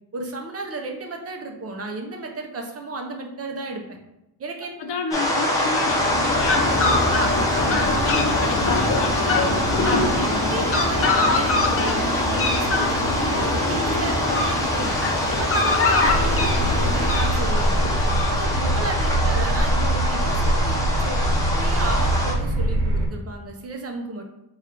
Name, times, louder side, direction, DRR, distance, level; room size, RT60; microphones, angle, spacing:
voice 1, 0.1-4.0 4.4-4.9 5.6-5.8 7.5-7.9 9.7-14.9 15.4-17.8 18.3-24.2, right 2 dB, 35° right, 2 dB, 0.5 m, -33 dB
voice 2, 4.8-9.9 18.5-18.9, left 5 dB, 85° left, 4 dB, 0.6 m, -32 dB
sound 1, 5.1-22.3, left 1 dB, 10° left, 0.7 m, -25 dB
Fowl, 5.8-18.8, left 2 dB, 35° left, 0.4 m, -24 dB
sound 2, 16.0-23.1, right 1 dB, 80° right, 0.9 m, -23 dB
3.6 x 2.3 x 4.3 m, 0.88 s
wide cardioid pair, 170°, 41 cm